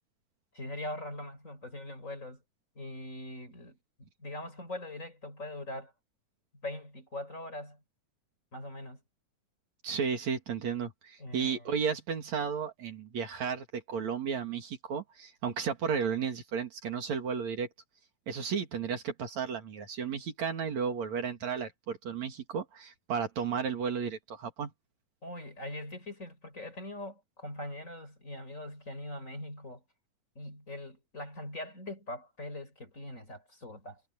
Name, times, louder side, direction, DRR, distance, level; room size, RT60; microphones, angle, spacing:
voice 1, 0.5-2.4 2.8-5.9 6.6-7.8 8.5-9.0 11.2-11.7 25.2-29.8 30.4-34.0, left 1 dB, 25° left, 4.2 m, -42 dB
voice 2, 9.8-17.7 18.3-24.7, right 6 dB, 65° right, 3.6 m, -33 dB
omnidirectional pair, 3.5 m